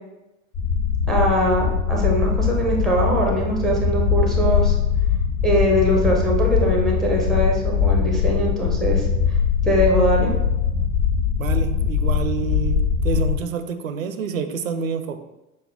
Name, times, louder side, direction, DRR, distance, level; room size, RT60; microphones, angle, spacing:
sound 1, 0.5-13.4, left 7 dB, 55° left, 1.0 m, -21 dB
voice 1, 1.1-4.8 5.4-9.1 9.6-10.3, right 1 dB, ahead, -1 dB, 0.4 m, -21 dB
voice 2, 11.4-15.2, right 6 dB, 75° right, 8 dB, 0.5 m, -28 dB
6.1 x 2.1 x 2.5 m, 0.98 s
figure-of-eight pair, 80°, 40 cm